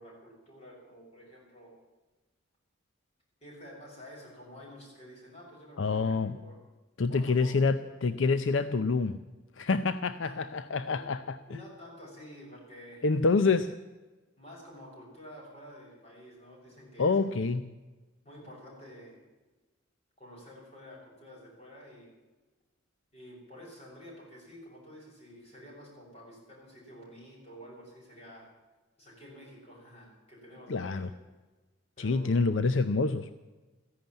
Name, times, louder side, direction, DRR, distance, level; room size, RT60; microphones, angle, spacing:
voice 1, 0.0-1.7 3.4-6.6 7.1-7.7 10.2-10.4 10.9-11.1 11.5-13.1 14.4-17.4 18.2-19.2 20.2-22.1 23.1-28.5 29.0-31.1 32.0-32.4, equal, 30° left, -3 dB, 6.7 m, -50 dB
voice 2, 5.8-6.4 7.0-9.2 9.6-11.6 13.0-13.7 17.0-17.7 30.7-31.1 32.0-33.3, left 4 dB, 70° left, 12 dB, 0.6 m, -27 dB
14.5 x 11.0 x 8.9 m, 1.2 s
head